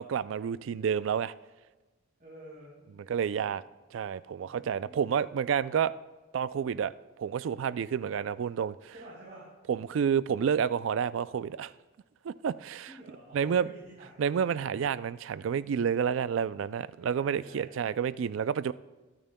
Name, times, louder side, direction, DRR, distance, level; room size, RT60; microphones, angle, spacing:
voice 1, 0.0-1.3 3.1-3.6 3.9-5.9 6.3-6.9 7.2-8.9 9.7-11.7 12.2-12.9 13.3-13.7 14.2-18.7, right 7 dB, 70° right, 0.3 m, -29 dB
voice 2, 2.2-3.6 4.4-5.2 8.9-9.5 12.9-14.1 17.0-18.2, right 1 dB, 45° right, 3.6 m, -51 dB
22.5 x 8.9 x 2.2 m
head